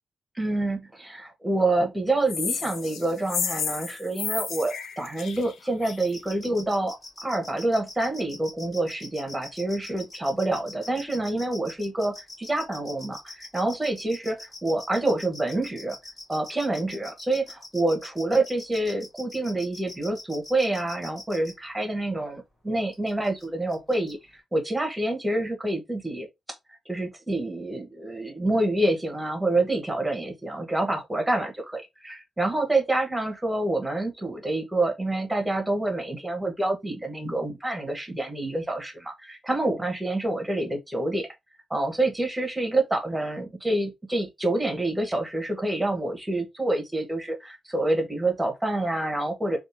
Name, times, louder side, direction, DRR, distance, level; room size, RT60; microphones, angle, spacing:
voice 1, 0.3-6.9 7.2-16.0 16.3-24.2 24.5-26.3 26.9-41.3 41.7-49.6, right 2 dB, 10° right, 1.1 m, -27 dB
sound 1, 2.3-6.1, left 6 dB, 75° left, 0.5 m, -32 dB
sound 2, 5.8-21.5 22.9-23.4 23.7-24.1, left 1 dB, 30° left, 2.0 m, -42 dB
3.5 x 2.5 x 2.7 m
cardioid pair, 120°, 0 cm